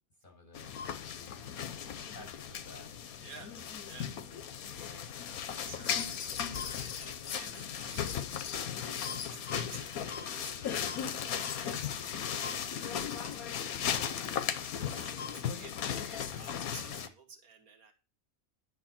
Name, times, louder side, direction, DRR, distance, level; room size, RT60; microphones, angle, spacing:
voice 1, 0.2-3.0 3.4-3.7 4.0-5.1 16.8-17.1, left 2 dB, 35° left, 0 dB, 7.0 m, -55 dB
sound 1, 0.5-17.1, left 8 dB, 85° left, 1.3 m, -36 dB
voice 2, 3.2-3.6 3.8-4.2 5.5-13.8 14.5-17.9, right 4 dB, 85° right, 5 dB, 2.1 m, -53 dB
11.0 x 6.7 x 4.3 m, 0.30 s
omnidirectional pair, 1.5 m